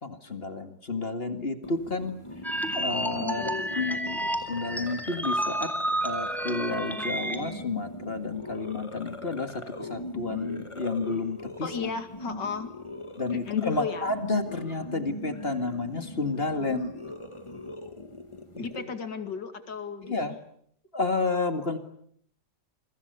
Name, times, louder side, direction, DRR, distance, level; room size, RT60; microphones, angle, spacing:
voice 1, 0.0-2.2 2.7-4.2 4.5-5.7 6.0-11.7 13.2-16.9 18.5-18.7 20.0-20.4 20.9-21.8, left 3 dB, 30° left, 8 dB, 2.3 m, -31 dB
sound 1, 1.6-18.8, left 1 dB, 15° left, 1.9 m, -41 dB
sound 2, 2.4-7.5, right 1 dB, ahead, 3.2 m, -31 dB
voice 2, 3.1-4.0 11.6-12.7 13.3-14.1 18.6-20.4, left 6 dB, 75° left, 9 dB, 2.9 m, -35 dB
28.5 x 25.0 x 6.9 m, 0.65 s
omnidirectional pair, 1.9 m